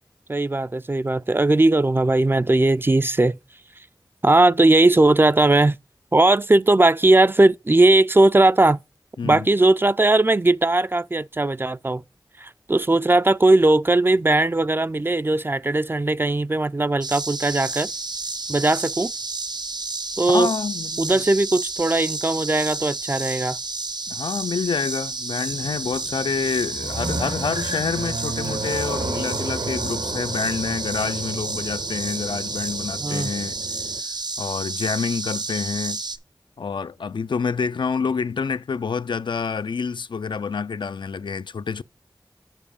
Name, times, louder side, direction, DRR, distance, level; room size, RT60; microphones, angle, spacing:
voice 1, 0.3-3.3 4.2-5.8 6.1-8.8 9.2-12.0 12.4-17.9 18.5-19.1 20.2-20.5 21.0-23.6 33.0-33.3, right 2 dB, 25° right, 0.3 m, -18 dB
sound 1, 17.0-36.2, right 3 dB, 60° right, 0.6 m, -31 dB
voice 2, 20.3-21.2 24.1-33.6 34.4-36.0 36.6-41.8, left 5 dB, 80° left, 0.3 m, -27 dB
sound 2, 25.5-34.0, right 2 dB, 80° right, 1.3 m, -33 dB
7.3 x 4.8 x 4.9 m
wide cardioid pair, 50°, 8 cm